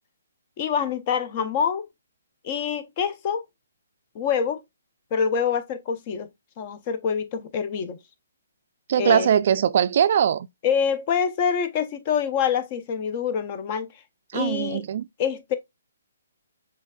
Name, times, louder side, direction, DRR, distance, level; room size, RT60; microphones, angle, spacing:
voice 1, 0.6-1.9 2.4-3.4 4.1-4.6 5.1-6.3 6.6-8.0 9.0-9.3 10.6-13.9 14.3-14.9 15.2-15.5, left 7 dB, 35° left, 0.7 m, -26 dB
voice 2, 8.9-10.5 14.3-15.1, right 9 dB, 50° right, 0.3 m, -21 dB
6.1 x 2.9 x 2.3 m
figure-of-eight pair, 135°, 0 cm